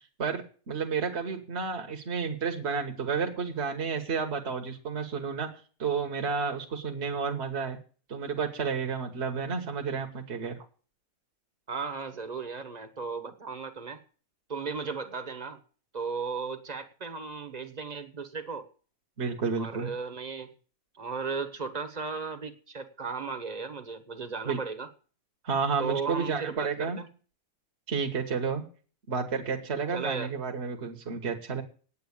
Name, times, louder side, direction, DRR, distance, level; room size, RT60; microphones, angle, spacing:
voice 1, 0.2-5.5 5.8-7.8 8.1-10.6 19.2-19.9 24.4-24.6 25.4-27.0 27.9-28.6 29.1-31.6, right 5 dB, 50° right, 3 dB, 1.5 m, -31 dB
voice 2, 11.7-14.0 14.5-15.6 15.9-18.7 19.6-20.5 21.0-24.9 25.8-27.1 29.9-30.3, right 5 dB, 30° right, 9 dB, 1.2 m, -35 dB
9.1 x 8.5 x 8.7 m, 0.40 s
omnidirectional pair, 1.5 m